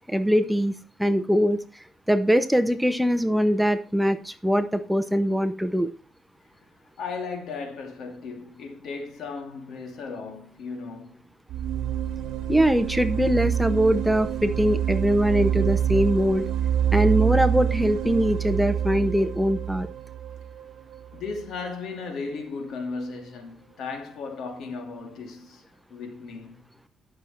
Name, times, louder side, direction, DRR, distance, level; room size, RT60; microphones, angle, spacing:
voice 1, 0.1-0.7 1.0-1.6 2.1-5.9 12.5-16.4 16.9-19.9, equal, 5° right, 0.8 m, -22 dB
voice 2, 7.0-11.3 21.1-25.6 25.9-26.6, left 4 dB, 75° left, 2.5 m, -36 dB
sound 1, 11.5-21.3, right 9 dB, 80° right, 0.8 m, -26 dB
11.0 x 6.7 x 4.3 m
cardioid pair, 90°, 0 cm